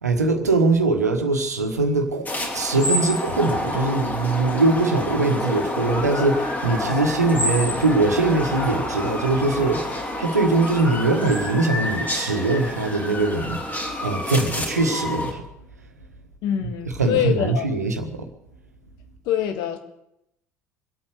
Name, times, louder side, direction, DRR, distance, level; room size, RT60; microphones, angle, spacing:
voice 1, 0.0-9.8 10.1-13.6 14.0-15.4 16.8-18.2, right 3 dB, 80° right, 1.4 m, -22 dB
sound 1, 2.3-15.3, left 1 dB, 20° left, 3.1 m, -28 dB
voice 2, 16.4-17.7 19.3-19.8, left 9 dB, 55° left, 1.7 m, -24 dB
24.0 x 8.6 x 6.7 m
figure-of-eight pair, 60°, 9 cm